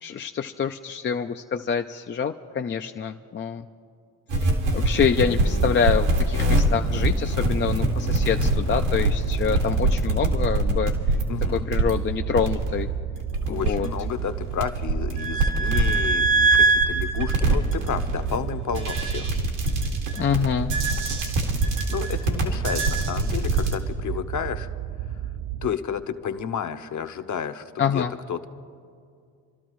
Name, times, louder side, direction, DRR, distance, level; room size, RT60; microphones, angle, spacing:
voice 1, 0.0-3.7 4.7-10.9 11.5-12.9 13.5-13.9 20.2-20.7 27.8-28.1, left 7 dB, 30° left, 5 dB, 0.4 m, -26 dB
sound 1, 4.3-23.8, right 2 dB, 85° right, 2.2 m, -23 dB
sound 2, 7.6-25.7, right 12 dB, 55° right, 0.6 m, -32 dB
voice 2, 11.3-11.7 13.5-19.3 21.6-24.7 25.6-28.0 28.3-28.5, left 8 dB, 45° left, 9 dB, 0.9 m, -31 dB
29.5 x 12.5 x 3.1 m, 2.3 s
supercardioid pair, 75°, 41 cm